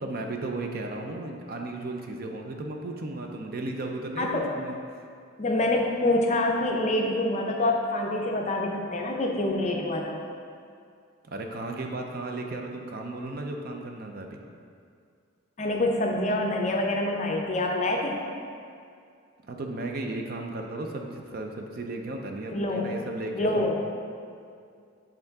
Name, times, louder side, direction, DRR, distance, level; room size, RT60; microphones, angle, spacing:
voice 1, 0.0-5.0 11.2-14.4 19.5-23.7, right 2 dB, 45° right, 3 dB, 0.4 m, -35 dB
voice 2, 4.2-4.5 5.4-10.2 15.6-18.2 22.5-22.9 23.3-23.8, left 1 dB, 30° left, 1 dB, 0.5 m, -26 dB
7.9 x 3.8 x 3.5 m, 2.3 s
head